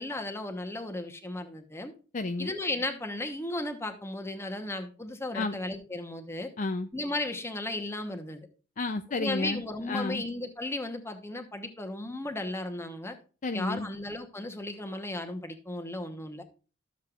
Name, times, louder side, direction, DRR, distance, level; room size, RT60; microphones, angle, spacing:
voice 1, 0.0-1.9 2.4-6.5 6.9-8.5 9.2-13.2 13.5-16.4, left 2 dB, 15° left, 6 dB, 1.0 m, -35 dB
voice 2, 2.1-2.5 5.3-5.5 6.6-6.9 8.8-9.6 9.9-10.2 13.4-13.9, left 3 dB, 40° left, 7 dB, 0.5 m, -31 dB
12.5 x 7.3 x 2.4 m, 0.35 s
head